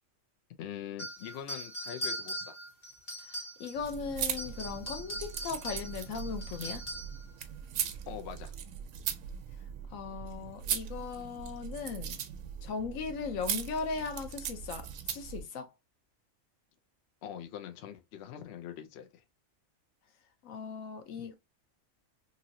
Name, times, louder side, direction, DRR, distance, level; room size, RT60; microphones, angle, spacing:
voice 1, 0.6-2.6 8.1-8.6 17.2-19.2 21.1-21.3, left 9 dB, 60° left, 0.7 m, -43 dB
sound 1, 1.0-3.9 4.2-7.2, equal, 35° left, 1.4 m, -40 dB
voice 2, 3.6-6.8 9.9-12.2 12.6-15.7 20.4-21.3, left 5 dB, 80° left, 1.0 m, -38 dB
sound 2, 3.7-15.4, right 9 dB, 80° right, 1.0 m, -39 dB
3.0 x 2.7 x 2.6 m
omnidirectional pair, 1.4 m